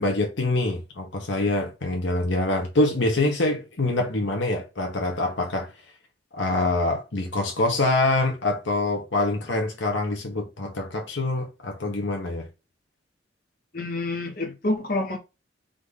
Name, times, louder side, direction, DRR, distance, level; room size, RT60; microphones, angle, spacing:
voice 1, 0.0-5.7 6.3-12.5, left 2 dB, 70° left, 1.0 m, -25 dB
voice 2, 13.7-15.2, left 2 dB, 50° left, 1.2 m, -27 dB
5.1 x 2.6 x 3.7 m
head